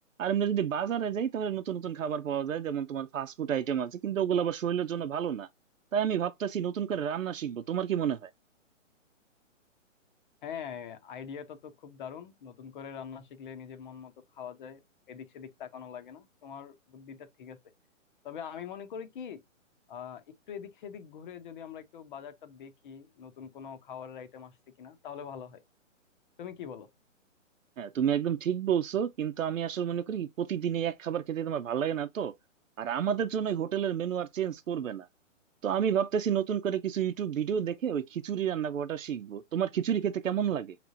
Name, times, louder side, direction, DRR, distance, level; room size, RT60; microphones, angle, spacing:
voice 1, 0.2-5.5 5.9-8.3 27.8-32.3 32.8-35.1 35.6-40.8, right 8 dB, 85° right, 0.8 m, -30 dB
voice 2, 10.4-17.6 18.2-19.4 19.9-25.6 26.4-26.9, left 7 dB, 40° left, 0.9 m, -43 dB
6.1 x 3.3 x 2.5 m
hypercardioid pair, 155°, 39 cm